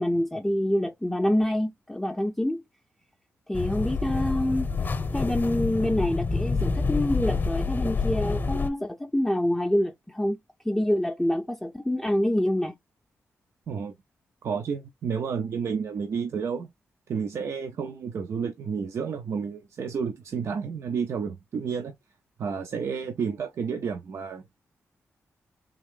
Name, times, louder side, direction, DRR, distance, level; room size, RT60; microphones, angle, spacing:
voice 1, 0.0-2.6 3.5-4.7 5.1-10.4 10.6-12.8, left 1 dB, 5° left, 0.4 m, -26 dB
sound 1, 3.5-8.7, left 4 dB, 40° left, 0.7 m, -27 dB
voice 2, 13.7-14.0 14.4-16.7 17.1-21.9 22.4-24.4, right 6 dB, 70° right, 0.5 m, -31 dB
3.6 x 2.5 x 3.6 m
cardioid pair, 75°, 5 cm